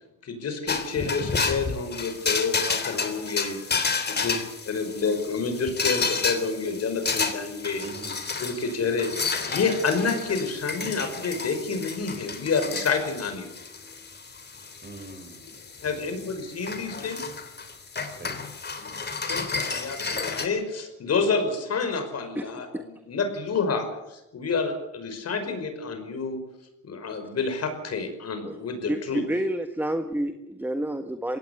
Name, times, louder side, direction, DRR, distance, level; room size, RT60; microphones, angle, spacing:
voice 1, 0.2-4.4 4.7-7.8 8.4-9.1 9.4-13.5 15.8-17.2 18.8-18.9 19.3-26.4 26.8-29.2, left 4 dB, 55° left, 7 dB, 5.4 m, -29 dB
sound 1, 0.7-20.5, left 4 dB, 35° left, 3.4 m, -31 dB
voice 2, 4.1-4.5 7.8-8.2 14.8-16.4 18.1-18.5, right 2 dB, 30° right, 6 dB, 6.6 m, -44 dB
voice 3, 28.9-31.4, right 1 dB, 5° right, 8 dB, 1.6 m, -29 dB
22.0 x 17.5 x 8.4 m, 0.89 s
cardioid pair, 90°, 30 cm